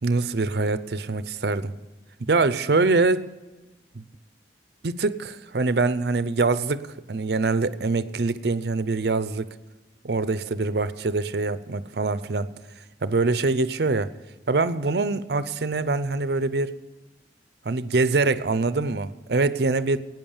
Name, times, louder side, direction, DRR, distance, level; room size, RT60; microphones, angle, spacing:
voice 1, 0.0-1.7 2.2-3.3 3.9-4.0 4.8-9.5 10.0-12.5 13.0-14.1 14.5-16.8 17.6-20.0, right 3 dB, 65° right, 0.6 m, -24 dB
14.0 x 9.3 x 7.3 m
head